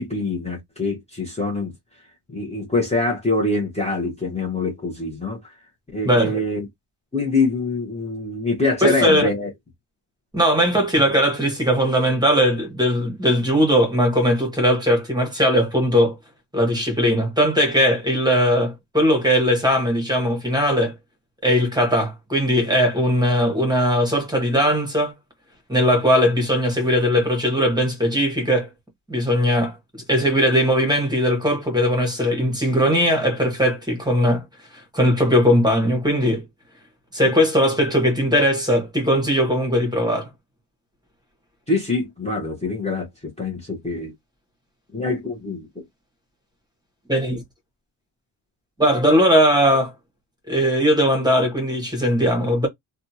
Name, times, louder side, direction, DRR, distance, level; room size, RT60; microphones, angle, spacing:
voice 1, 0.0-1.7 2.3-5.5 5.9-6.7 7.1-9.5 41.7-43.1 43.4-44.1 44.9-45.7, left 3 dB, 15° left, 0.9 m, -24 dB
voice 2, 6.0-6.4 8.8-9.3 10.3-16.2 16.5-20.9 21.4-25.1 25.7-28.7 29.1-34.4 34.9-36.4 37.1-40.3 47.1-47.4 48.8-49.9 50.5-52.7, equal, 10° right, 1.1 m, -19 dB
2.7 x 2.3 x 2.7 m
wide cardioid pair, 130°, 46 cm